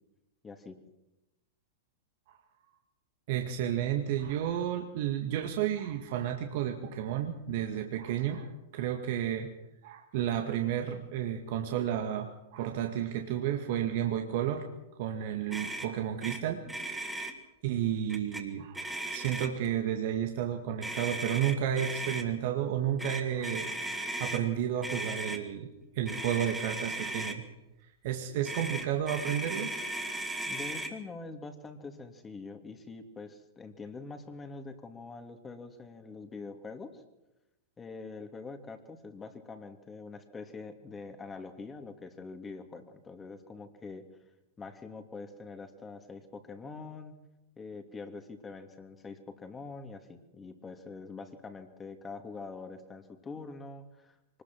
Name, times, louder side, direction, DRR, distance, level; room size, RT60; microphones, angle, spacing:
voice 1, 0.4-0.8 30.4-37.0 37.8-44.1 44.6-47.1 47.6-54.4, left 4 dB, 20° left, 6 dB, 2.8 m, -44 dB
voice 2, 3.3-9.5 9.8-14.7 15.0-16.7 17.6-23.8 24.2-25.7 26.0-27.4 28.0-29.7 30.1-30.3, right 10 dB, 55° right, 4 dB, 2.0 m, -32 dB
Motor vehicle (road), 15.5-15.9 16.2-16.4 16.7-17.3 18.1-18.4 18.7-19.7 20.8-22.2 23.0-24.4 24.8-25.4 26.1-27.4 28.4-30.9, right 2 dB, 5° right, 3.1 m, -36 dB
24.5 x 20.5 x 6.3 m, 0.97 s
hypercardioid pair, 105°, 0 cm